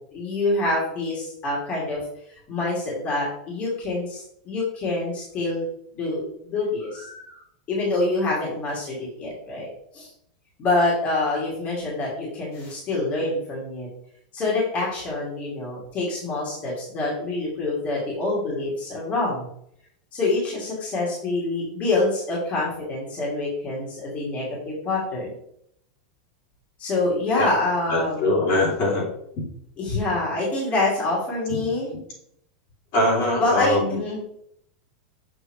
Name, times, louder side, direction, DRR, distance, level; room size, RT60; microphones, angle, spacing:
voice 1, 0.0-2.0 2.3-5.7 5.9-7.4 7.7-9.7 9.9-10.1 10.6-13.9 14.3-19.5 20.1-25.3 26.8-28.3 29.8-31.9 33.4-34.4, left 2 dB, 35° left, -5 dB, 2.5 m, -26 dB
voice 2, 27.9-29.1 29.3-29.5 31.5-32.0 32.9-34.0, left 1 dB, 50° left, -4 dB, 2.7 m, -23 dB
6.8 x 4.9 x 3.1 m, 0.71 s
supercardioid pair, 135°, 4 cm